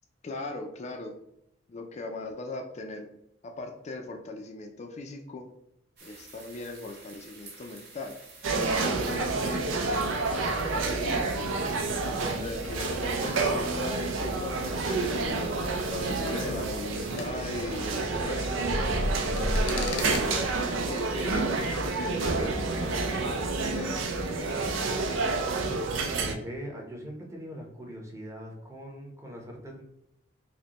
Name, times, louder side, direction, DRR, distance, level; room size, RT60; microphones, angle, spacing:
voice 1, 0.2-1.1 1.7-3.1 3.4-5.5 6.0-8.1 8.6-9.6 10.2-11.5 12.3-15.3 15.8-18.7 19.5-23.9, left 2 dB, 35° left, 3 dB, 0.4 m, -39 dB
sound 1, 6.0-17.3, right 3 dB, 60° right, 1.0 m, -50 dB
sound 2, 8.4-26.3, right 3 dB, 90° right, 0.5 m, -29 dB
sound 3, 15.2-21.3, left 1 dB, 70° left, 0.8 m, -35 dB
voice 2, 26.0-29.8, equal, 15° right, 0 dB, 0.8 m, -41 dB
5.0 x 2.1 x 2.9 m, 0.78 s
head